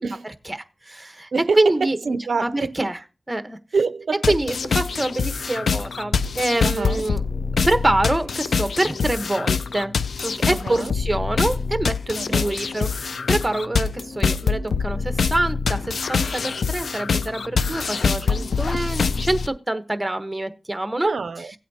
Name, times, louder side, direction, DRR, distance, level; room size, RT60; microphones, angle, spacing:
voice 1, 0.0-0.3 1.3-2.8 3.7-4.3 6.6-7.0 10.5-10.9 12.1-12.6 21.0-21.5, right 4 dB, 75° right, 0.5 m, -26 dB
voice 2, 0.9-1.3 1.6-3.0 3.3-3.6 4.3-7.2 7.6-9.9 10.2-21.1, right 2 dB, 15° right, 1.1 m, -25 dB
sound 1, 4.2-19.5, left 5 dB, 90° left, 0.4 m, -25 dB
16.5 x 8.3 x 2.8 m
wide cardioid pair, 75°, 0 cm